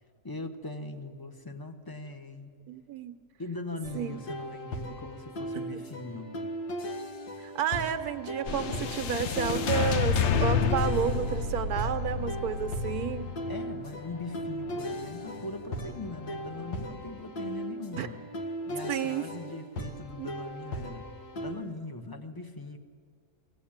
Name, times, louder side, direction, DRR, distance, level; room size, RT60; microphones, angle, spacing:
voice 1, 0.2-2.5 3.4-6.3 13.5-18.2 18.6-21.1 21.4-22.8, left 2 dB, 15° left, 7 dB, 1.1 m, -40 dB
voice 2, 2.7-3.1 3.9-4.1 7.4-13.3 17.9-18.1 18.9-19.3 20.2-20.3, right 8 dB, 75° right, 9 dB, 1.4 m, -31 dB
sound 1, 3.8-21.5, equal, 80° left, 2.2 m, -38 dB
sound 2, 8.4-16.8, left 6 dB, 55° left, 0.9 m, -31 dB
23.0 x 16.5 x 8.8 m, 2.1 s
omnidirectional pair, 1.7 m